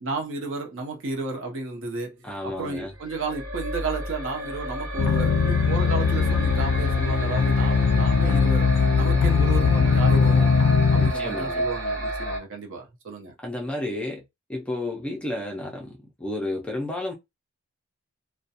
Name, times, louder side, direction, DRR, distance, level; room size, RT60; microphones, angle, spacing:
voice 1, 0.0-2.2 2.4-10.6 10.9-13.3, right 3 dB, 60° right, 0.7 m, -33 dB
voice 2, 2.2-2.9 6.2-6.4 10.9-11.6 13.4-14.2 14.5-17.1, left 1 dB, 5° left, 0.4 m, -32 dB
sound 1, 2.9-12.4, right 1 dB, 75° right, 1.1 m, -31 dB
sound 2, 5.0-11.1, left 5 dB, 75° left, 0.3 m, -20 dB
2.3 x 2.1 x 2.7 m
head